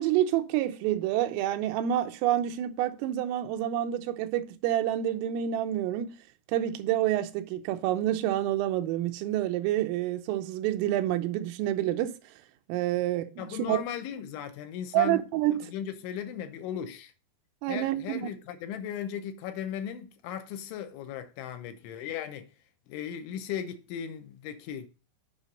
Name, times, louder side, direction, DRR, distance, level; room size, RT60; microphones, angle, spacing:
voice 1, 0.0-6.1 6.5-12.1 12.7-13.8 14.9-15.6 17.6-18.3, right 12 dB, 90° right, 3.4 m, -28 dB
voice 2, 13.4-15.2 15.7-17.1 17.7-22.5 22.9-24.9, left 9 dB, 80° left, 3.1 m, -37 dB
9.8 x 5.7 x 5.1 m
omnidirectional pair, 5.8 m